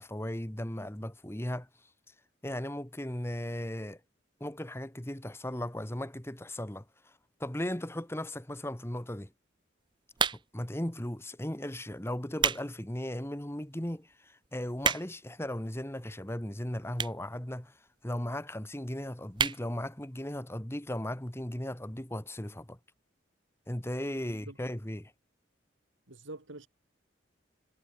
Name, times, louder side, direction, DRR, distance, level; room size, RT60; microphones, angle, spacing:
voice 1, 0.0-1.7 2.4-4.0 4.4-6.8 7.4-9.3 10.5-17.7 18.0-22.8 23.7-25.1, left 1 dB, 15° left, 1.5 m, -36 dB
sound 1, 10.1-10.7 11.4-11.6 12.1-12.7 13.1-13.2 13.8-13.9 14.1-14.2 14.4-15.3 16.1-16.2 16.9-17.3 17.6-17.7 17.9-18.0 18.2-18.3 18.6-18.8 19.3-19.6 20.0-20.1 20.3-20.4, right 7 dB, 25° right, 0.5 m, -29 dB
voice 2, 24.1-24.6 26.1-26.7, right 2 dB, 85° right, 2.9 m, -46 dB
head